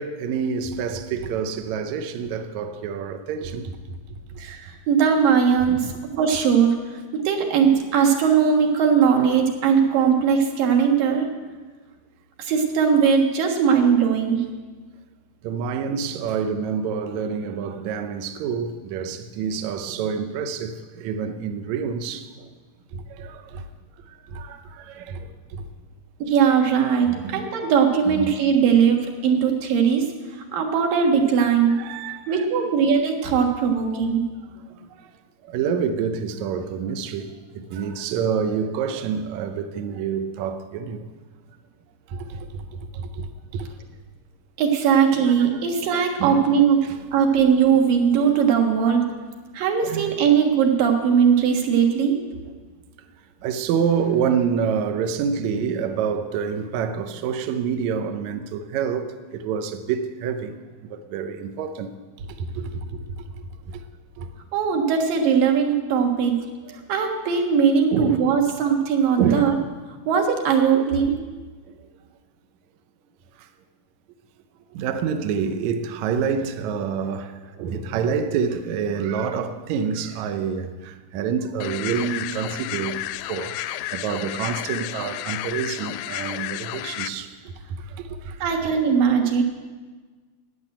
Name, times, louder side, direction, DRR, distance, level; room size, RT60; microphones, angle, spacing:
voice 1, 0.0-3.7 5.7-5.9 15.4-22.5 22.9-23.6 24.3-25.6 27.0-27.5 28.0-28.3 31.4-32.5 35.5-41.1 42.1-43.3 43.5-43.7 44.9-45.1 45.4-45.6 46.2-46.4 46.8-47.0 49.8-50.1 53.4-60.6 60.9-61.9 62.4-63.0 64.2-64.3 66.6-66.8 67.9-68.2 69.2-69.5 70.7-71.0 74.7-83.0 83.3-87.3 88.1-88.4, right 6 dB, 85° right, 1.6 m, -27 dB
voice 2, 4.4-6.8 7.1-11.3 12.4-14.4 26.2-30.1 30.5-31.7 32.3-34.2 44.6-46.8 47.1-49.1 49.5-52.2 64.5-66.4 66.9-69.5 70.1-71.1 88.4-89.4, right 7 dB, 65° right, 3.0 m, -19 dB
sound 1, 81.6-87.1, left 15 dB, 80° left, 2.3 m, -32 dB
12.0 x 9.6 x 8.9 m
omnidirectional pair, 4.5 m